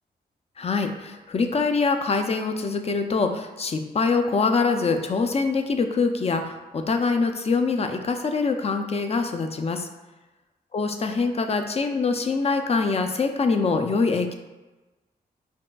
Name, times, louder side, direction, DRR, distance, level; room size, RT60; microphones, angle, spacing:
voice 1, 0.6-9.9 10.7-14.3, left 4 dB, 35° left, 6 dB, 0.4 m, -24 dB
5.3 x 2.5 x 2.3 m, 1.1 s
cardioid pair, 60°, 17 cm